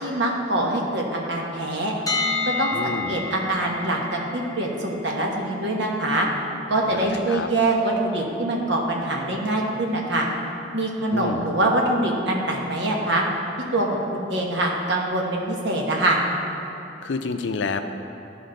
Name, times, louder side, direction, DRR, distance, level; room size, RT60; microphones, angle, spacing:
voice 1, 0.0-1.9 2.6-6.3 6.7-10.3 10.7-13.2 13.7-16.2, right 1 dB, 70° right, -1 dB, 1.2 m, -24 dB
sound 1, 2.1-14.0, left 3 dB, 20° left, 0.6 m, -35 dB
voice 2, 2.7-3.2 6.9-7.5 11.1-11.5 17.0-17.8, left 4 dB, 75° left, 8 dB, 0.5 m, -29 dB
12.5 x 5.1 x 3.9 m, 2.8 s
head